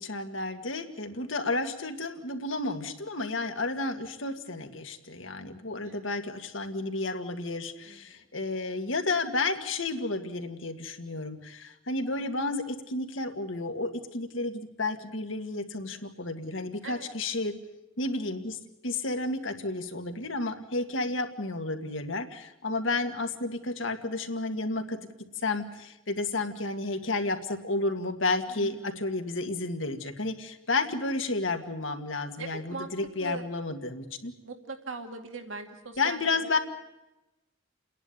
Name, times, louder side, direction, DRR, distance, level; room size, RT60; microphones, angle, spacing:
voice 1, 0.0-17.5 18.0-25.0 25.4-34.3 36.0-36.6, left 2 dB, 80° left, 6 dB, 2.0 m, -31 dB
voice 2, 7.9-8.3 16.8-17.1 20.8-21.2 28.5-29.2 32.4-32.9 33.2-33.5 34.4-36.6, right 3 dB, 85° right, 5 dB, 2.4 m, -41 dB
29.5 x 11.0 x 10.0 m, 0.98 s
head